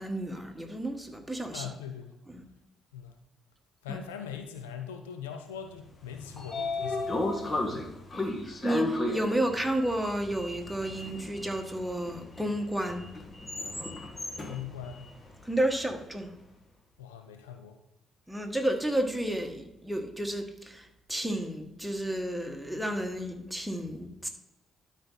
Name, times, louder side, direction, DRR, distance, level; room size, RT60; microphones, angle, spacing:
voice 1, 0.0-1.7 2.3-2.4 3.9-4.0 8.1-13.1 15.5-16.3 18.3-24.3, right 1 dB, ahead, 3 dB, 1.6 m, -32 dB
voice 2, 1.5-2.1 2.9-3.1 3.8-7.3 7.7-7.9 14.5-15.1 17.0-17.8, left 8 dB, 85° left, 7 dB, 0.6 m, -41 dB
Sliding door, 5.9-16.1, left 2 dB, 35° left, 1.6 m, -35 dB
12.5 x 4.2 x 4.0 m, 0.89 s
hypercardioid pair, 45°, 0 cm